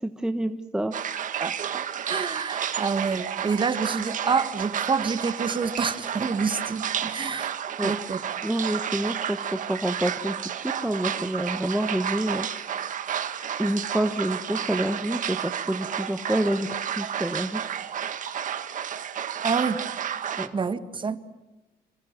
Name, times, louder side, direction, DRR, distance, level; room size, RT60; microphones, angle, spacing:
voice 1, 0.0-0.9 7.8-7.9 8.4-12.5 13.6-16.7 17.0-17.8 20.4-20.5, right 1 dB, 5° right, 7 dB, 1.2 m, -28 dB
sound 1, 0.9-20.5, right 9 dB, 50° right, 1.8 m, -31 dB
voice 2, 1.4-7.5 7.8-8.2 19.4-19.8 20.5-21.2, right 5 dB, 30° right, 11 dB, 1.7 m, -27 dB
28.0 x 26.0 x 7.5 m, 1.1 s
cardioid pair, 110°, 17 cm